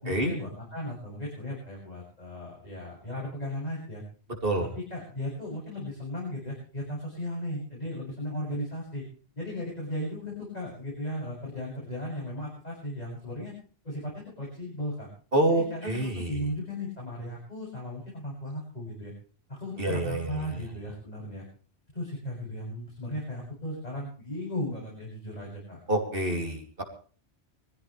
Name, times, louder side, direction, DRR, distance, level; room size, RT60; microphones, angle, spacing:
voice 1, 0.0-4.0 4.6-9.0 9.4-13.5 13.8-15.1 15.5-19.1 19.5-21.4 21.9-25.8, left 1 dB, 40° left, -5 dB, 7.8 m, -36 dB
voice 2, 15.3-16.3 19.8-20.5 25.9-26.8, right 1 dB, 60° right, 3 dB, 3.3 m, -27 dB
23.5 x 15.5 x 3.4 m, 0.41 s
omnidirectional pair, 1.1 m